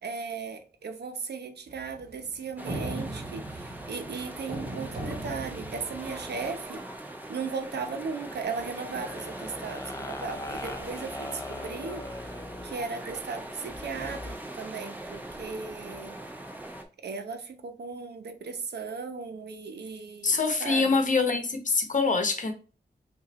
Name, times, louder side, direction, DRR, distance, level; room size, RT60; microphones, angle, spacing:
voice 1, 0.0-6.8 7.3-16.2 17.0-21.0, right 5 dB, 75° right, 0.9 m, -37 dB
sound 1, 1.7-6.5, right 1 dB, 60° right, 1.2 m, -39 dB
sound 2, 2.6-16.8, right 1 dB, 10° right, 0.8 m, -41 dB
sound 3, 8.8-12.8 13.6-14.4, left 2 dB, 15° left, 0.5 m, -40 dB
voice 2, 20.2-22.5, left 4 dB, 50° left, 1.0 m, -25 dB
5.6 x 2.6 x 3.0 m
wide cardioid pair, 125°, 17 cm